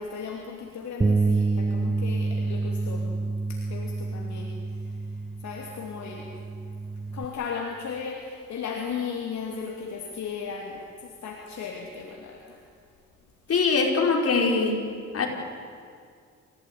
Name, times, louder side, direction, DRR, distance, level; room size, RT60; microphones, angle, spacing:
voice 1, 0.0-3.1 3.5-4.5 5.4-6.3 7.1-12.6, left 6 dB, 65° left, 0 dB, 2.9 m, -36 dB
Bass guitar, 1.0-7.3, right 3 dB, 15° right, 0.7 m, -28 dB
voice 2, 13.5-14.8 15.1-15.3, left 4 dB, 50° left, 1 dB, 4.7 m, -22 dB
28.0 x 16.0 x 9.6 m, 2.2 s
cardioid pair, 90°, 30 cm